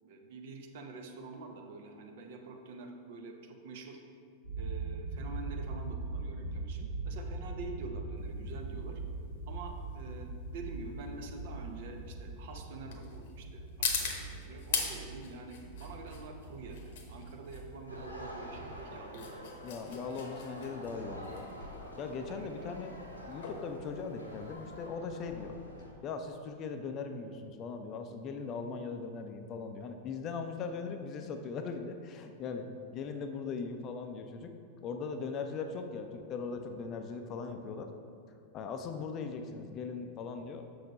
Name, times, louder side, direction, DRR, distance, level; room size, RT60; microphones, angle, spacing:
voice 1, 0.0-4.0 4.6-9.0 9.5-19.5 22.3-22.7, right 3 dB, 55° right, 3 dB, 0.8 m, -47 dB
sound 1, 4.4-18.9, right 3 dB, 75° right, 1.1 m, -42 dB
sound 2, 8.2-24.9, left 5 dB, 55° left, 1.0 m, -41 dB
sound 3, 17.9-25.9, equal, 80° left, 1.2 m, -47 dB
voice 2, 19.6-21.5 22.0-23.0 23.3-25.6 26.0-32.7 32.9-34.5 34.8-37.9 38.5-40.6, left 5 dB, 35° left, 6 dB, 0.6 m, -39 dB
6.5 x 6.4 x 4.2 m, 2.4 s
figure-of-eight pair, 90°, 0 cm